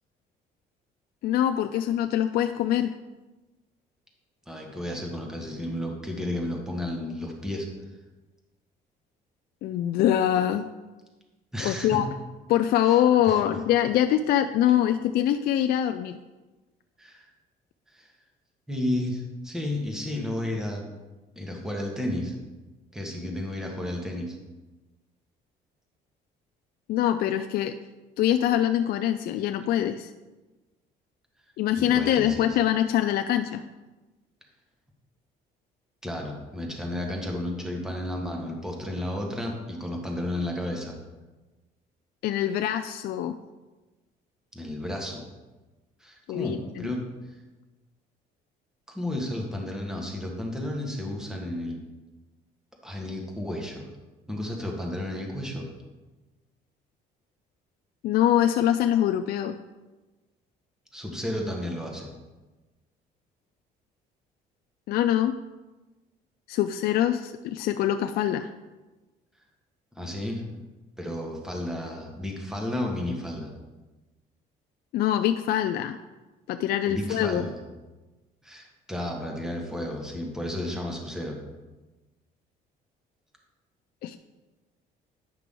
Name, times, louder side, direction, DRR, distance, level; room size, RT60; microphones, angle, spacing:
voice 1, 1.2-2.9 9.6-10.7 11.6-12.0 12.5-16.2 26.9-27.7 28.2-30.1 31.6-33.6 42.2-43.4 46.3-46.9 58.0-59.6 64.9-65.3 66.5-68.5 74.9-76.0 76.5-77.4 84.0-84.2, left 11 dB, 65° left, 7 dB, 0.4 m, -24 dB
voice 2, 4.5-7.7 11.5-12.0 12.8-13.0 13.3-13.4 17.0-17.3 17.9-18.1 18.7-20.8 21.3-22.3 22.9-24.4 31.8-32.5 36.0-41.0 44.5-45.2 46.0-47.0 47.3-47.4 48.9-51.8 52.8-53.9 54.3-55.7 60.9-62.1 70.0-70.6 71.0-73.5 76.9-77.5 78.4-81.4, left 1 dB, 5° right, 0 dB, 1.5 m, -32 dB
9.6 x 5.8 x 3.8 m, 1.2 s
cardioid pair, 110°, 17 cm